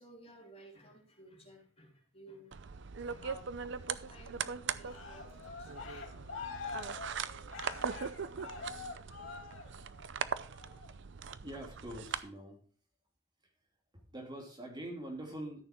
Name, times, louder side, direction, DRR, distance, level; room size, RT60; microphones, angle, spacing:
voice 1, 0.0-6.1, equal, 30° left, -1 dB, 3.2 m, -57 dB
sound 1, 2.5-12.2, right 6 dB, 65° right, 0.6 m, -40 dB
Cheering, 4.8-10.1 10.5-10.9, left 5 dB, 75° left, 2.4 m, -46 dB
voice 2, 11.4-12.6 13.9-15.6, right 1 dB, 25° right, 0 dB, 2.8 m, -44 dB
13.5 x 6.7 x 4.5 m, 0.41 s
head